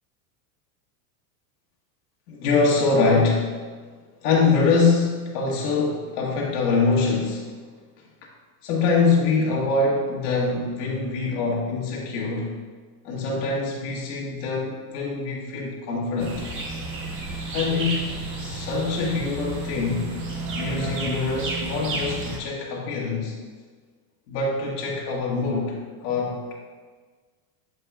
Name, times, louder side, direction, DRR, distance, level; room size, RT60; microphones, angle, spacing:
voice 1, 2.3-3.6 4.2-7.5 8.6-12.5 13.0-16.5 17.5-18.1 18.4-20.1 20.5-23.3 24.3-26.5, left 4 dB, 70° left, -3 dB, 1.7 m, -24 dB
sound 1, 16.2-22.4, right 2 dB, 25° right, 0.8 m, -31 dB
8.8 x 5.1 x 2.3 m, 1.5 s
supercardioid pair, 135°, 48 cm